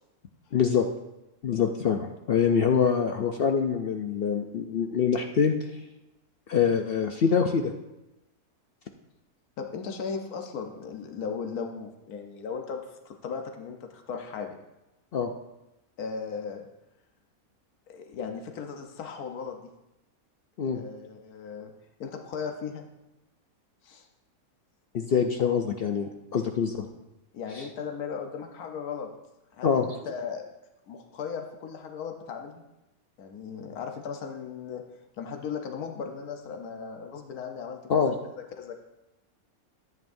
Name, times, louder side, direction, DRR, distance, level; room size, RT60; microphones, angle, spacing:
voice 1, 0.5-0.9 1.4-5.6 6.5-7.7 15.1-15.3 20.6-20.8 24.9-26.9 27.6-27.7 29.6-29.9 37.9-38.2, left 6 dB, 60° left, 4 dB, 0.6 m, -25 dB
voice 2, 9.6-14.6 16.0-16.6 17.9-19.7 20.7-21.7 22.0-22.8 23.8-24.1 27.3-29.1 29.5-30.4 30.9-32.6 33.2-34.8 35.2-38.1 38.6-38.8, left 6 dB, 85° left, 4 dB, 1.4 m, -37 dB
13.5 x 9.0 x 2.6 m, 0.96 s
omnidirectional pair, 1.5 m